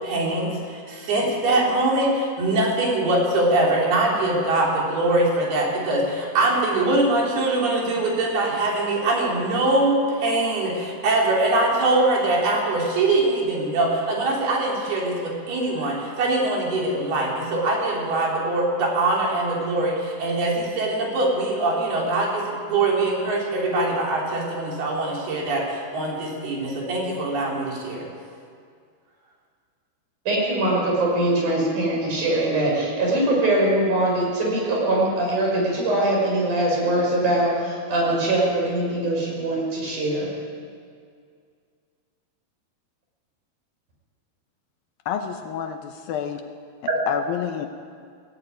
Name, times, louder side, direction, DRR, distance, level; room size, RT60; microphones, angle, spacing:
voice 1, 0.0-28.1, right 2 dB, 70° right, -3 dB, 5.7 m, -23 dB
voice 2, 30.3-40.3, right 1 dB, 50° right, -2 dB, 7.1 m, -22 dB
voice 3, 45.1-46.4 47.1-47.7, left 8 dB, 75° left, 6 dB, 2.4 m, -28 dB
17.5 x 17.5 x 9.3 m, 2.2 s
omnidirectional pair, 4.6 m